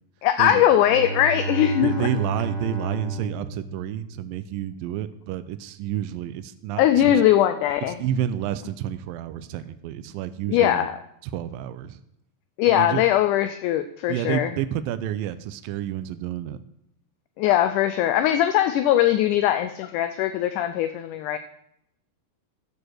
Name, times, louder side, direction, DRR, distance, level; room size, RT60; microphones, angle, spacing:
voice 1, 0.2-2.1 6.8-7.9 10.5-10.9 12.6-14.5 17.4-21.4, left 11 dB, 80° left, 10 dB, 1.8 m, -20 dB
Bowed string instrument, 0.7-4.5, right 3 dB, 70° right, 0.9 m, -31 dB
voice 2, 1.8-7.2 7.9-10.9 11.2-12.0 12.6-13.0 14.1-16.6, right 11 dB, 85° right, 12 dB, 2.4 m, -30 dB
13.5 x 4.7 x 6.2 m, 0.75 s
omnidirectional pair, 4.0 m